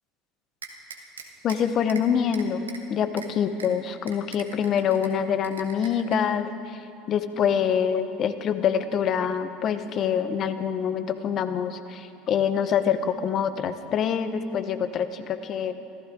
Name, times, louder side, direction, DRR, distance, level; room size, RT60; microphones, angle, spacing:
sound 1, 0.6-1.6 1.9-2.0 2.3-2.8 3.2-3.3 3.6-3.7 4.1-5.1 5.4-6.2, right 6 dB, 90° right, 1.3 m, -40 dB
voice 1, 1.4-6.8 7.1-15.7, left 7 dB, 45° left, 11 dB, 1.1 m, -25 dB
24.5 x 15.0 x 3.9 m, 2.7 s
hypercardioid pair, 75°, 0 cm